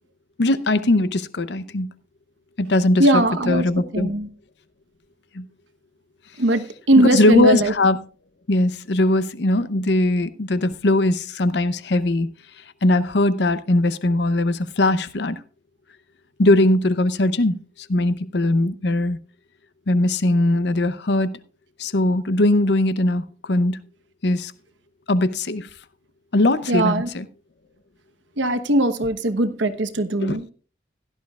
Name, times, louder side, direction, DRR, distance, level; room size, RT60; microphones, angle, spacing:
voice 1, 0.4-1.9 2.6-4.1 5.3-5.5 7.0-8.0 8.5-12.3 12.8-15.4 16.4-17.5 17.9-19.2 19.9-21.4 21.8-23.8 24.2-24.5 25.1-25.7 26.3-27.3 30.2-30.4, left 2 dB, 70° left, 0.7 m, -20 dB
voice 2, 3.0-3.7 3.9-4.3 6.4-7.7 26.7-27.1 28.4-30.5, right 1 dB, 85° right, 1.1 m, -20 dB
16.5 x 11.5 x 2.4 m
head